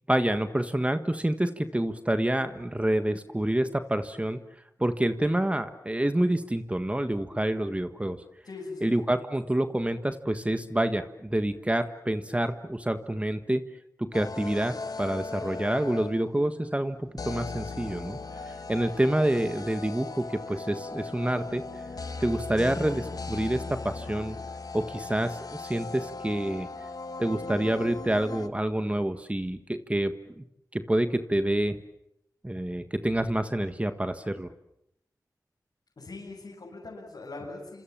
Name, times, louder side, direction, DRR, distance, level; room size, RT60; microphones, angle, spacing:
voice 1, 0.1-4.4 4.8-8.2 8.8-13.6 14.0-18.2 18.5-21.6 22.2-24.4 24.7-26.7 27.2-30.4 30.7-31.8 32.4-34.5, right 1 dB, 20° right, 9 dB, 1.6 m, -27 dB
voice 2, 8.4-8.9 36.0-37.8, left 3 dB, 80° left, -4 dB, 7.8 m, -41 dB
sound 1, 14.1-16.4 17.2-28.5, left 3 dB, 65° left, 1.5 m, -38 dB
28.0 x 26.5 x 7.4 m, 0.79 s
cardioid pair, 45°, 7 cm